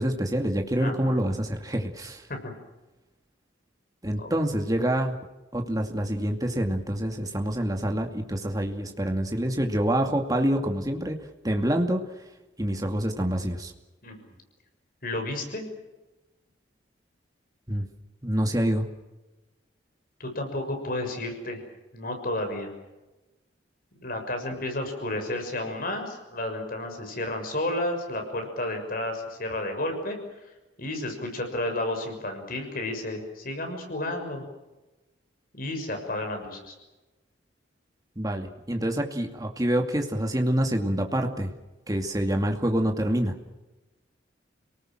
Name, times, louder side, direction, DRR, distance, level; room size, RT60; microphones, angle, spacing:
voice 1, 0.0-2.2 4.0-5.1 5.5-11.2 11.4-12.0 12.6-13.7 17.7-17.9 18.2-18.9 38.2-41.5 41.9-43.3, right 1 dB, 20° right, 3 dB, 2.4 m, -26 dB
voice 2, 0.8-1.2 2.3-2.4 4.2-4.3 14.0-14.3 15.0-15.7 20.2-21.6 21.9-22.7 24.0-30.2 30.8-34.4 35.5-36.7, left 1 dB, 50° left, 4 dB, 6.4 m, -32 dB
30.0 x 19.0 x 7.6 m, 1.1 s
head